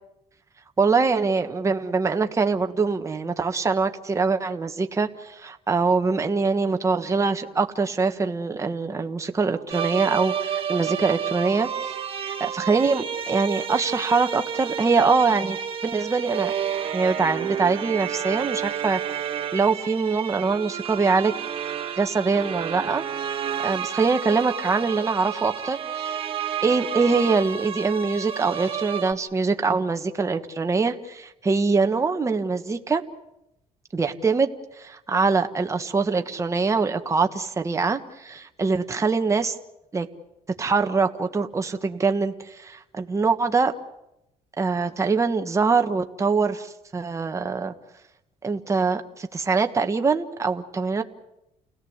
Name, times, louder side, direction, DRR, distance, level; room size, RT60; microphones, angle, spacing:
voice 1, 0.8-11.9 12.2-16.5 16.9-21.3 22.0-23.0 23.6-26.2 26.6-33.0 33.9-34.5 34.8-39.5 39.9-40.1 40.6-43.7 44.6-47.7 48.4-51.0, right 4 dB, 25° right, 6 dB, 1.5 m, -23 dB
sound 1, 9.7-29.1, right 8 dB, 45° right, 1.9 m, -30 dB
29.5 x 17.5 x 8.1 m, 0.88 s
cardioid pair, 115°, 13 cm